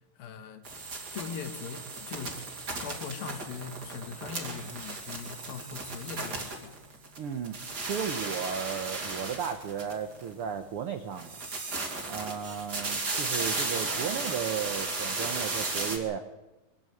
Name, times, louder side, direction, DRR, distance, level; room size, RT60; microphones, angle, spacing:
voice 1, 0.2-0.7 1.1-2.5 2.7-6.8, left 6 dB, 85° left, 8 dB, 3.3 m, -40 dB
sound 1, 0.6-7.2 7.4-10.3 11.1-16.0, right 3 dB, 30° right, 2.7 m, -35 dB
voice 2, 7.2-7.6 7.8-11.4 12.1-16.2, right 7 dB, 75° right, 8 dB, 1.2 m, -34 dB
23.5 x 12.5 x 9.1 m, 1.1 s
omnidirectional pair, 4.0 m